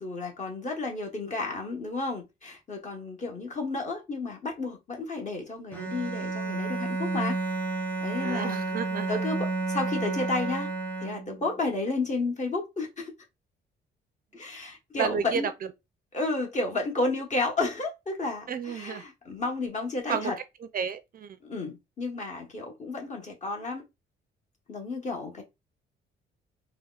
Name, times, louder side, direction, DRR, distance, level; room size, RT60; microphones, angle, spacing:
voice 1, 0.0-7.4 7.7-8.6 9.1-10.7 11.0-13.1 14.3-15.5 16.1-20.3 21.4-23.8 24.7-25.4, left 3 dB, 35° left, 1.2 m, -32 dB
Bowed string instrument, 5.7-11.5, right 3 dB, 5° left, 0.9 m, -31 dB
voice 2, 8.2-9.2 15.0-15.5 18.5-19.0 20.1-20.3 20.7-21.4, right 7 dB, 45° right, 0.4 m, -31 dB
3.9 x 2.1 x 2.4 m
cardioid pair, 90°, 20 cm